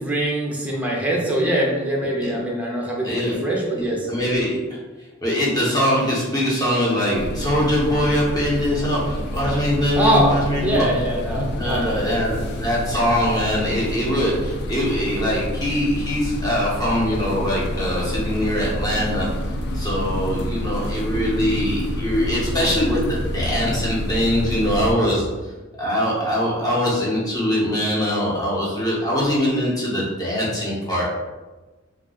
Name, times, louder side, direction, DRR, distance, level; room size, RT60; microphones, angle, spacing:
voice 1, 0.0-4.1 9.9-10.3 10.6-12.2, right 1 dB, 5° right, -3 dB, 0.5 m, -23 dB
voice 2, 3.0-3.4 3.7-4.8 5.2-10.8 11.3-19.3 19.7-25.2 25.8-31.0, equal, 20° left, -6 dB, 0.8 m, -22 dB
sound 1, 7.1-24.9, equal, 55° left, 0.3 m, -28 dB
sound 2, 17.5-25.3, right 1 dB, 75° left, 1.4 m, -37 dB
2.3 x 2.2 x 3.7 m, 1.2 s
head